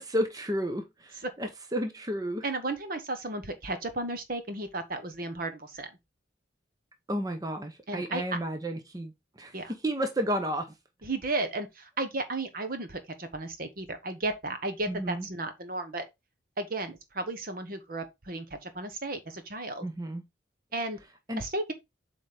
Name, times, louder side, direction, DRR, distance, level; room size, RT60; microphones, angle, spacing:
voice 1, 0.0-2.4 7.1-9.1 9.4-9.6 9.8-10.7 14.9-15.3 19.8-20.2 21.3-21.4, equal, 20° right, 0.9 m, -32 dB
voice 2, 2.4-5.9 7.9-8.2 9.5-9.7 11.0-16.0 16.6-19.8 20.7-21.0 21.4-21.7, right 2 dB, 50° right, 1.1 m, -34 dB
7.7 x 4.1 x 3.4 m
head